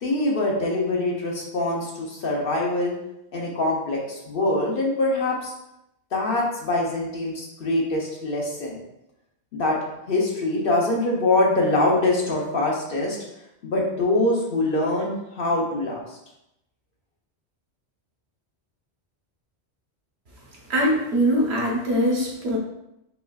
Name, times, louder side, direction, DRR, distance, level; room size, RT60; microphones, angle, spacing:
voice 1, 0.0-3.0 3.3-5.5 6.1-8.8 9.5-9.8 10.1-13.2 13.6-16.2, left 2 dB, 60° left, -2 dB, 0.9 m, -24 dB
voice 2, 20.7-22.6, equal, 70° right, -3 dB, 1.2 m, -22 dB
5.5 x 2.4 x 2.3 m, 0.84 s
omnidirectional pair, 1.1 m